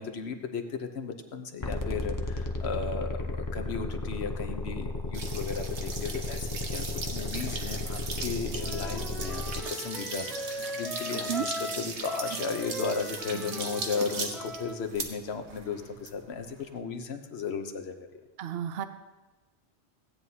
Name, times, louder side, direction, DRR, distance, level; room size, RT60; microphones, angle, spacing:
voice 1, 0.0-18.2, left 5 dB, 70° left, 6 dB, 1.1 m, -35 dB
sound 1, 1.6-9.6, left 2 dB, 25° left, 0.5 m, -34 dB
sound 2, 5.1-16.8, right 4 dB, 90° right, 1.4 m, -38 dB
Wind instrument woodwind instrument, 8.6-14.8, equal, ahead, 1.3 m, -39 dB
voice 2, 11.1-11.5 18.4-18.9, right 9 dB, 70° right, 10 dB, 0.8 m, -32 dB
16.0 x 9.3 x 2.8 m, 1.1 s
omnidirectional pair, 1.1 m